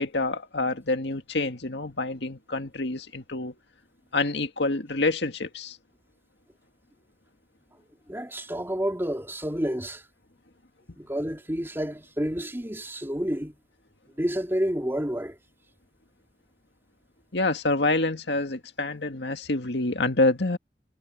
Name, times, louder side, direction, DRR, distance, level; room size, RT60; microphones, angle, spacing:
voice 1, 0.0-3.5 4.1-5.8 17.3-20.6, left 2 dB, 75° left, 2.0 m, -27 dB
voice 2, 8.1-10.0 11.0-13.6 14.2-15.4, equal, 15° right, 3.4 m, -29 dB
head